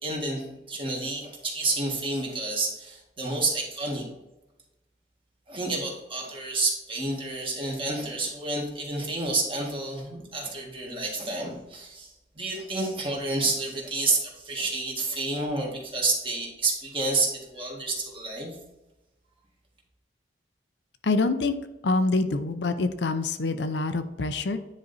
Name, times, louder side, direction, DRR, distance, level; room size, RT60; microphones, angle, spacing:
voice 1, 0.0-4.0 5.5-12.1 12.3-18.6, right 3 dB, 30° right, -1 dB, 1.7 m, -29 dB
voice 2, 21.0-21.6 21.8-24.6, left 3 dB, 80° left, 9 dB, 0.6 m, -25 dB
9.8 x 4.0 x 4.0 m, 0.97 s
head